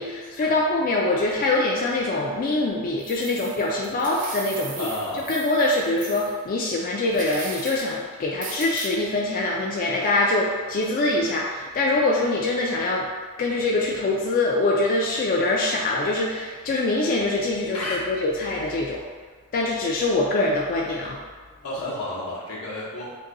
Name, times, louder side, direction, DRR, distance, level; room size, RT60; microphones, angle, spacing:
voice 1, 0.0-4.9 5.3-13.1 13.4-19.0 19.5-21.2, left 2 dB, 40° left, -3 dB, 0.3 m, -24 dB
sound 1, 3.0-6.4 7.1-7.9 8.4-8.9, right 4 dB, 40° right, 0.5 m, -38 dB
voice 2, 4.8-5.3 17.7-18.0 21.6-23.1, left 1 dB, 85° left, -5 dB, 0.9 m, -31 dB
2.7 x 2.6 x 3.7 m, 1.5 s
head